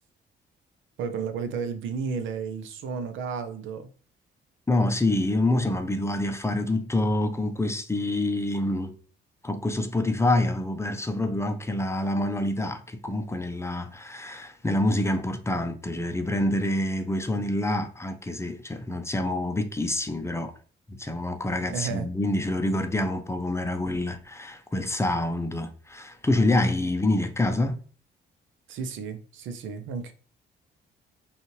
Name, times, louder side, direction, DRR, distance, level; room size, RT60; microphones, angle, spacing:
voice 1, 1.0-3.9 21.7-22.1 28.7-30.1, right 6 dB, 80° right, 0.7 m, -32 dB
voice 2, 4.7-8.9 9.4-20.5 20.9-27.8, left 1 dB, 15° left, 0.5 m, -26 dB
5.4 x 2.4 x 3.1 m
cardioid pair, 90°, 20 cm